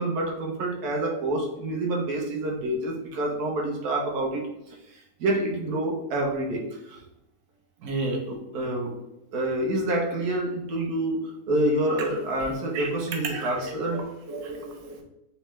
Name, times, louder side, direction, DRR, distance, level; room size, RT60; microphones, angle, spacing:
voice 1, 0.0-7.0 7.8-8.9 9.3-14.0, right 1 dB, 65° right, 1.4 m, -28 dB
voice 2, 13.3-15.0, right 3 dB, 90° right, 1.4 m, -37 dB
4.2 x 3.5 x 3.2 m
omnidirectional pair, 1.9 m